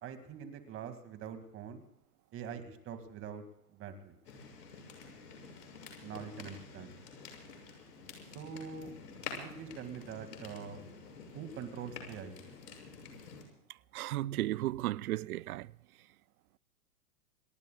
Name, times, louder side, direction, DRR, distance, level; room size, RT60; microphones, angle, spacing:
voice 1, 0.0-1.8 2.3-3.4 3.7-4.2 6.0-6.9 8.3-8.9 9.4-10.8 11.3-12.4, right 7 dB, 25° right, 2.3 m, -44 dB
sound 1, 4.2-13.4, left 4 dB, 80° left, 7.3 m, -48 dB
voice 2, 13.9-15.7, right 15 dB, 65° right, 0.6 m, -34 dB
28.5 x 19.5 x 2.4 m
hypercardioid pair, 130°, 48 cm